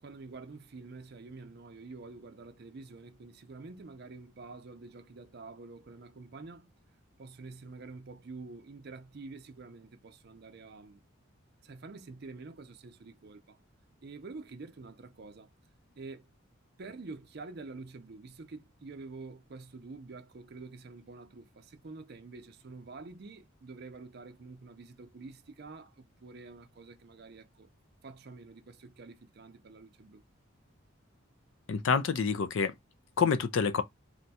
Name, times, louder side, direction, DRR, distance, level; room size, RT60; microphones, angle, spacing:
voice 1, 0.0-6.7 7.2-11.0 11.6-13.6 14.0-15.5 16.0-16.3 16.8-27.7 28.0-30.2, right 3 dB, 50° right, 0.5 m, -47 dB
voice 2, 31.7-32.7 33.2-33.8, left 5 dB, 65° left, 0.4 m, -27 dB
2.5 x 2.3 x 4.0 m
head